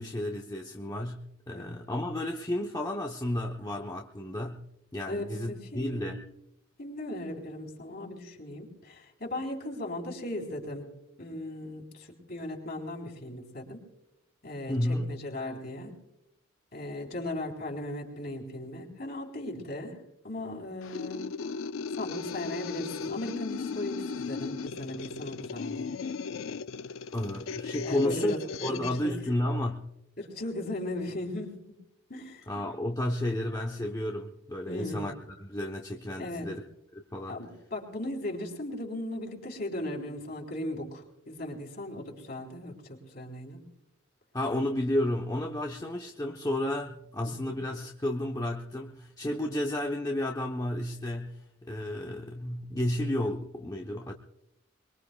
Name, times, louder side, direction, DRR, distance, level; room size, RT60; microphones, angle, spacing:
voice 1, 0.0-4.6 4.9-6.2 14.7-15.2 27.1-29.9 32.5-36.6 36.9-37.4 44.3-54.1, left 1 dB, 20° left, 0.8 m, -32 dB
voice 2, 5.1-6.2 6.8-10.9 11.2-13.8 14.4-15.9 16.7-20.0 20.2-21.2 21.9-25.9 27.8-29.1 30.2-31.7 32.1-32.4 34.7-35.1 36.2-36.5 37.3-43.6 47.2-47.6, left 1 dB, 50° left, 3.9 m, -37 dB
sound 1, 20.8-29.0, left 5 dB, 85° left, 0.5 m, -37 dB
23.5 x 23.0 x 2.3 m
head